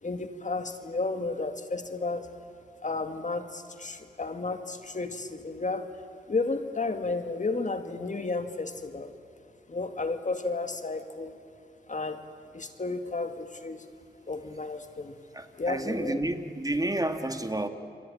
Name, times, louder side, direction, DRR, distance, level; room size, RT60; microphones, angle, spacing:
voice 1, 0.0-2.3 2.8-5.9 6.3-9.1 9.7-11.3 11.9-12.2 12.5-13.9 14.3-15.1 15.6-16.2, left 3 dB, 45° left, 8 dB, 2.2 m, -32 dB
voice 2, 15.3-17.7, right 1 dB, 20° right, 7 dB, 2.0 m, -30 dB
29.0 x 23.5 x 8.7 m, 2.5 s
cardioid pair, 55°, 18 cm